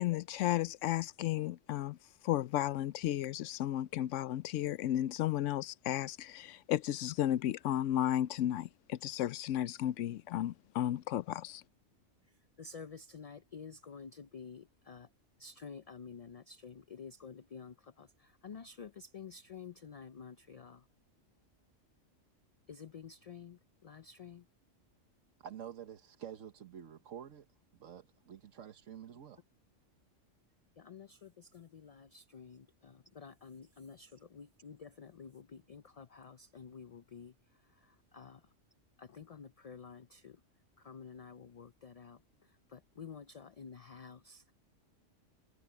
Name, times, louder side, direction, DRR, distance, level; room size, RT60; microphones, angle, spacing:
voice 1, 0.0-2.0 2.2-11.6, left 12 dB, 80° left, 0.9 m, -33 dB
voice 2, 12.6-15.1 15.4-20.8 22.7-24.4 30.8-37.3 37.7-38.4 39.0-40.4 40.8-42.2 42.7-44.5, left 6 dB, 50° left, 0.4 m, -50 dB
voice 3, 25.4-27.5 27.8-29.4, right 9 dB, 85° right, 1.4 m, -48 dB
omnidirectional pair, 1.3 m